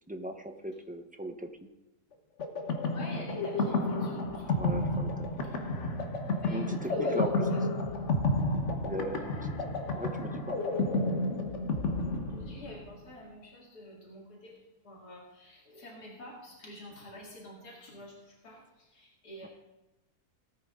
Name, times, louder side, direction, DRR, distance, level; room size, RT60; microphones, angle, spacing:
voice 1, 0.1-1.7 4.6-5.5 6.5-7.5 8.8-9.4 9.9-10.6 19.4-19.5, right 1 dB, 5° right, 5 dB, 0.7 m, -38 dB
sound 1, 2.4-12.9, left 2 dB, 50° left, 1.4 m, -31 dB
voice 2, 2.9-4.8 5.3-5.6 6.4-7.2 7.5-7.6 12.3-14.6 14.8-18.6 18.9-19.5, left 1 dB, 85° left, -3 dB, 2.9 m, -48 dB
18.0 x 9.0 x 3.7 m, 1.0 s
omnidirectional pair, 1.6 m